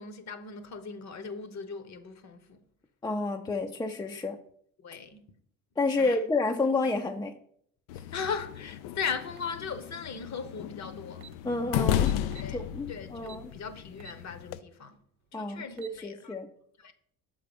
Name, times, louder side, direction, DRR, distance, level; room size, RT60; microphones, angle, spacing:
voice 1, 0.0-2.6 4.8-5.3 6.0-6.2 8.1-11.3 12.3-12.6 12.9-15.0 15.3-16.3 16.8-16.9, left 6 dB, 40° left, 1.0 m, -38 dB
voice 2, 3.0-4.4 5.8-7.3 7.9-8.0 11.4-12.2 12.5-13.5 15.3-16.5, left 3 dB, 10° left, 0.5 m, -30 dB
sound 1, 7.9-14.6, left 11 dB, 65° left, 0.5 m, -34 dB
sound 2, 9.4-9.6 10.8-10.9 11.1-11.4 12.0-12.5 13.3-13.5 14.0-14.2 14.7-14.8 15.6-16.0, right 9 dB, 85° right, 0.6 m, -49 dB
6.5 x 3.8 x 5.1 m
hypercardioid pair, 60°, 42 cm